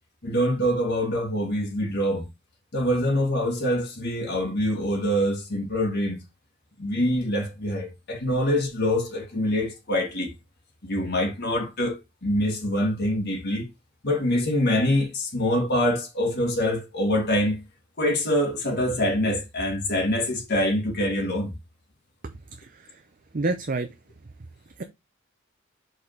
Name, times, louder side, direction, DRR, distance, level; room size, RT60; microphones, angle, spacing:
voice 1, 0.2-2.2 2.7-6.2 6.8-10.3 10.8-12.0 12.2-13.6 14.0-17.6 18.0-21.5, left 1 dB, 50° left, 2.0 m, -25 dB
voice 2, 22.6-23.0 23.3-23.9, right 3 dB, 40° right, 0.6 m, -28 dB
5.2 x 4.1 x 4.4 m
head